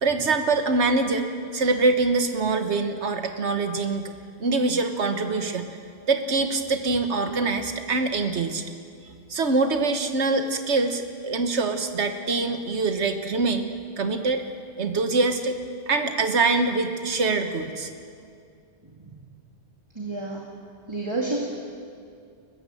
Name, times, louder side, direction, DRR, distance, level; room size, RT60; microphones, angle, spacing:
voice 1, 0.0-1.3 1.5-4.1 4.4-5.7 6.1-8.6 9.3-13.7 14.0-14.4 14.8-15.6 15.9-17.9, right 3 dB, 85° right, 7 dB, 1.7 m, -24 dB
voice 2, 19.9-20.4 20.9-21.4, right 2 dB, 25° right, -2 dB, 2.4 m, -30 dB
29.5 x 15.0 x 7.8 m, 2.3 s
omnidirectional pair, 1.1 m